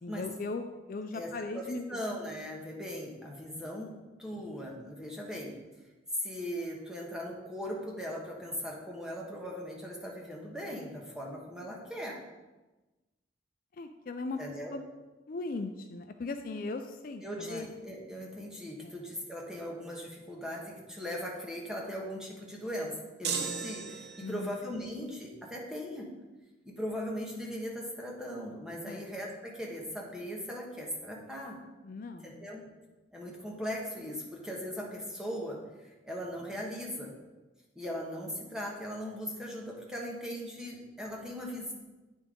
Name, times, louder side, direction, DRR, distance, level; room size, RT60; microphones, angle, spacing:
voice 1, 0.0-2.0 3.6-3.7 13.8-14.4 14.7-14.9 15.3-17.7 18.8-18.9 24.2-24.5 28.8-29.0 31.8-32.5, left 3 dB, 50° left, 7 dB, 0.4 m, -38 dB
voice 2, 1.1-3.9 4.2-5.6 6.2-12.2 14.4-14.7 17.2-22.9 23.2-26.1 26.6-31.6 32.2-32.6 33.1-37.1 37.7-41.7, equal, 5° right, -2 dB, 1.2 m, -39 dB
sound 1, 23.2-24.6, right 5 dB, 60° right, 0.7 m, -35 dB
9.0 x 5.3 x 3.8 m, 1.1 s
head